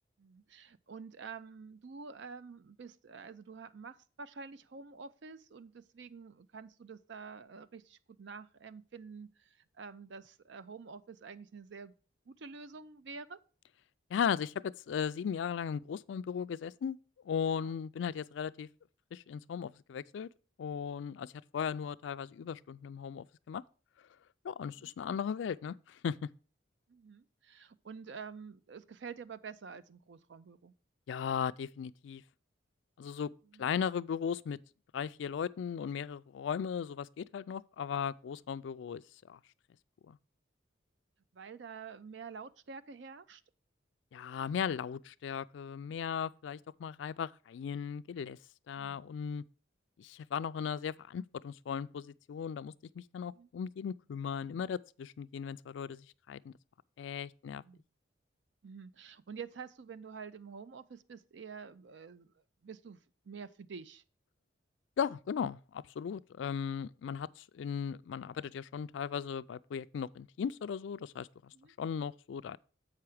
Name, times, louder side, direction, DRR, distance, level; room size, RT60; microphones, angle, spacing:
voice 1, 0.2-11.9 12.3-13.4 17.6-17.7 24.8-24.9 26.9-30.7 33.5-33.7 41.3-43.4 48.8-49.1 53.3-53.5 57.4-57.8 58.6-62.3 62.6-63.0 63.3-64.0 71.5-71.7, right 5 dB, 65° right, 0.5 m, -48 dB
voice 2, 14.1-17.0 17.3-18.7 19.1-20.3 20.6-23.6 24.4-26.2 31.1-32.2 33.0-33.3 33.6-34.6 34.9-39.0 39.3-39.4 40.1-40.2 44.1-48.4 48.7-49.4 50.0-56.5 57.0-57.6 65.0-71.3 71.8-72.6, left 7 dB, 75° left, 0.3 m, -37 dB
7.6 x 5.8 x 4.8 m
head